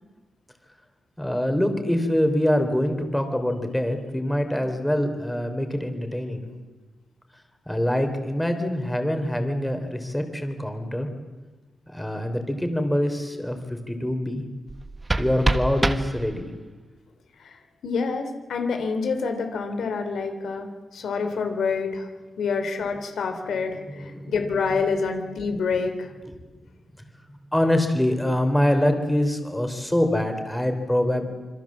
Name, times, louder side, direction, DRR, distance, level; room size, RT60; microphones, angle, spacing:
voice 1, 1.2-6.6 7.7-11.1 11.9-14.4 15.2-16.5 23.7-24.4 26.3-26.4 27.5-31.3, left 1 dB, 5° left, 6 dB, 3.4 m, -24 dB
sound 1, 14.7-16.7, right 2 dB, 20° right, 1.2 m, -26 dB
voice 2, 17.8-22.1 22.4-26.1, left 5 dB, 80° left, 6 dB, 3.3 m, -27 dB
26.5 x 26.0 x 7.4 m, 1.2 s
wide cardioid pair, 150°, 0 cm